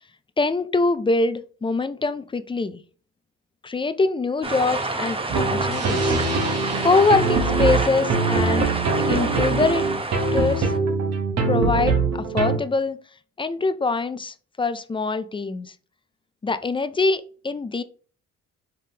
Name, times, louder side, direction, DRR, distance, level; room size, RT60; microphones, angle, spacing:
voice 1, 0.4-2.8 3.6-6.2 6.8-8.7 9.1-9.9 10.3-10.7 11.5-13.0 13.4-15.7 16.4-17.8, left 3 dB, 15° left, 0.4 m, -23 dB
sound 1, 4.4-10.8, right 2 dB, 20° right, 0.8 m, -28 dB
sound 2, 5.3-12.6, right 4 dB, 55° right, 1.1 m, -23 dB
4.9 x 3.7 x 2.8 m
cardioid pair, 90°, 30 cm